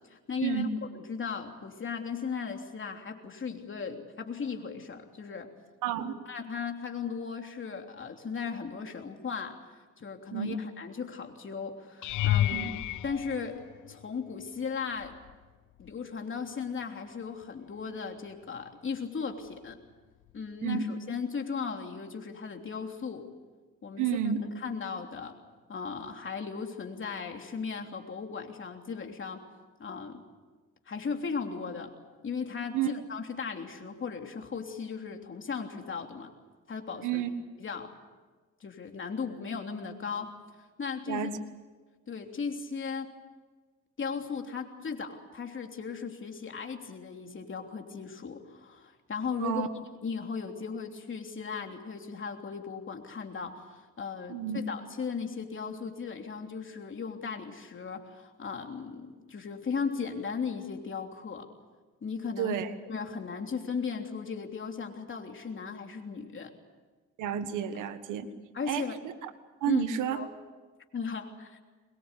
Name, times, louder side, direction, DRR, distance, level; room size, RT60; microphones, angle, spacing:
voice 1, 0.1-0.7 0.9-5.5 6.2-9.6 10.0-12.7 13.0-13.6 13.9-15.1 15.8-19.8 20.3-23.3 23.8-24.1 24.6-25.4 25.7-29.4 29.8-30.2 30.9-32.0 32.2-36.3 36.7-37.2 37.6-37.9 38.6-40.3 40.8-41.3 42.1-43.1 44.0-49.7 50.0-61.5 62.0-62.6 62.9-66.5 68.5-69.0 69.7-69.8 70.1-70.3 70.9-71.6, left 5 dB, 40° left, 4 dB, 3.2 m, -36 dB
voice 2, 5.8-6.2 10.3-10.6 12.5-12.7 20.6-20.8 24.0-24.4 32.7-32.9 37.0-37.3 41.1-41.4 49.4-49.7 54.3-54.6 62.4-62.7 67.2-68.3 68.7-68.9 69.2-69.3 69.6-70.2, right 9 dB, 90° right, 10 dB, 1.6 m, -30 dB
sound 1, 12.0-14.3 15.0-15.4 15.8-15.9 20.3-20.4, left 14 dB, 80° left, 0.9 m, -31 dB
23.0 x 21.5 x 8.3 m, 1.3 s
cardioid pair, 90°, 30 cm